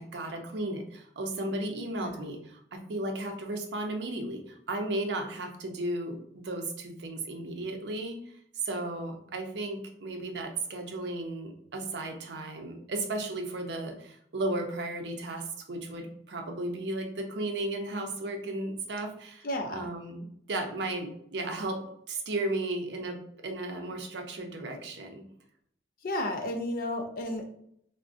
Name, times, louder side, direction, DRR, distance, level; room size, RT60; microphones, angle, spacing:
voice 1, 0.0-8.2 8.6-19.5 19.7-25.2, right 2 dB, 75° right, 4 dB, 0.5 m, -35 dB
voice 2, 19.4-19.9 26.0-27.5, left 1 dB, 50° left, 4 dB, 0.5 m, -32 dB
3.5 x 2.1 x 2.5 m, 0.68 s
head